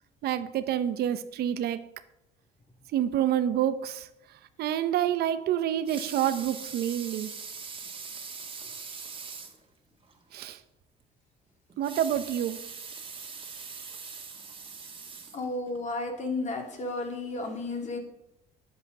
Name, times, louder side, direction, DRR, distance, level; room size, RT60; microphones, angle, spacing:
voice 1, 0.2-1.9 2.9-4.1 4.6-7.3 10.3-10.6 11.8-12.6, right 11 dB, 70° right, 12 dB, 0.8 m, -28 dB
Water tap faucet / Sink (filling or washing) / Liquid, 5.7-9.6 10.1-10.2 10.5-10.6 11.7-15.8 16.4-16.5, right 5 dB, 30° right, 1.8 m, -42 dB
voice 2, 15.3-18.0, left 2 dB, 45° left, 3 dB, 2.8 m, -33 dB
9.9 x 8.3 x 6.7 m, 0.83 s
cardioid pair, 110°, 17 cm